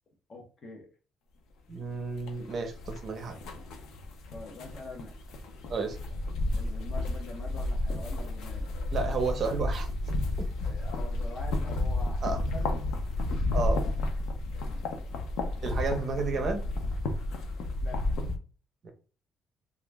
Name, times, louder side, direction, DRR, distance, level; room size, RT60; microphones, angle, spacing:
voice 1, 0.3-0.9 4.3-5.2 6.6-8.7 10.6-12.8 14.5-14.8 17.8-18.2, left 2 dB, 35° left, 2 dB, 0.9 m, -45 dB
voice 2, 1.7-3.4 5.7-6.0 8.9-9.9 10.4-10.5 12.2-12.4 13.5-13.8 15.6-16.6 18.8-18.9, right 4 dB, 35° right, 4 dB, 0.7 m, -31 dB
sound 1, 2.2-18.4, left 2 dB, 75° left, 0.6 m, -32 dB
3.0 x 2.4 x 3.4 m, 0.36 s
cardioid pair, 180°, 0 cm